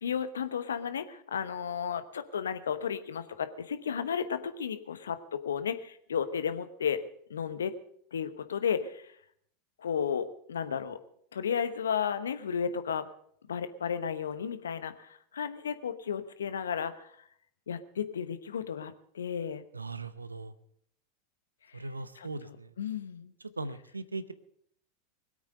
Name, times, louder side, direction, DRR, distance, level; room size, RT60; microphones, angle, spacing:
voice 1, 0.0-7.0 7.3-7.7 8.1-9.1 9.8-11.0 11.3-13.1 13.5-17.1 17.7-19.6 21.7-21.8 22.1-23.3, left 7 dB, 75° left, 11 dB, 1.1 m, -33 dB
voice 2, 19.7-20.5 21.7-22.7 23.6-24.3, right 3 dB, 90° right, 15 dB, 0.8 m, -39 dB
20.5 x 8.7 x 6.6 m, 0.67 s
figure-of-eight pair, 90°, 0 cm